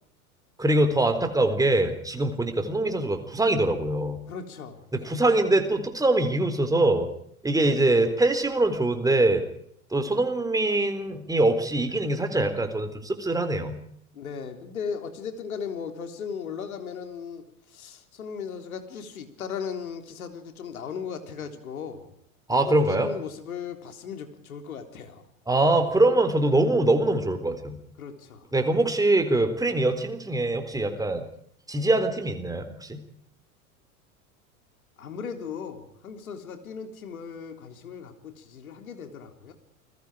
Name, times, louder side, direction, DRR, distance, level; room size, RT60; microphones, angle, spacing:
voice 1, 0.6-4.2 4.9-7.1 7.4-9.4 9.9-13.8 22.5-23.1 25.5-27.8 28.5-31.2 31.7-33.0, right 2 dB, 10° right, 7 dB, 4.0 m, -23 dB
voice 2, 4.3-5.2 7.6-7.8 14.1-22.1 22.6-25.3 28.0-28.5 35.0-39.5, left 6 dB, 75° left, 6 dB, 3.8 m, -37 dB
29.5 x 21.5 x 5.0 m, 0.69 s
figure-of-eight pair, 85°, 43 cm